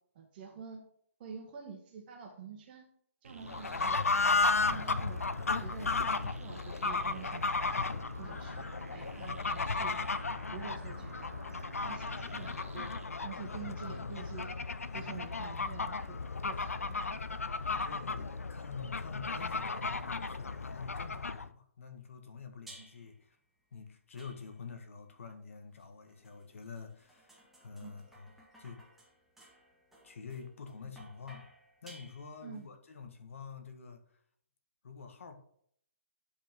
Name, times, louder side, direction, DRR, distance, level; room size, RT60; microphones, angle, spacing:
voice 1, 0.1-0.8 1.2-2.8 3.2-4.0 4.6-5.3 5.6-7.8 8.2-10.1 10.5-11.3 11.8-12.9 13.2-14.6 14.9-17.1 22.8-22.9 27.8-27.9 32.4-32.7, right 6 dB, 40° right, 2 dB, 1.5 m, -47 dB
sound 1, 3.2-13.1, right 4 dB, 70° right, 1.1 m, -51 dB
Fowl / Bird, 3.4-21.5, left 3 dB, 85° left, 0.6 m, -34 dB
voice 2, 3.4-3.8 14.9-15.2 17.6-23.4 23.7-28.3 28.6-28.8 30.0-31.5 31.8-34.0 34.8-35.4, left 5 dB, 65° left, 6 dB, 1.7 m, -48 dB
sound 2, 22.7-23.2 24.2-24.8 25.8-32.6, right 1 dB, 5° right, 1.9 m, -58 dB
10.5 x 5.3 x 3.7 m, 0.65 s
figure-of-eight pair, 135°, 8 cm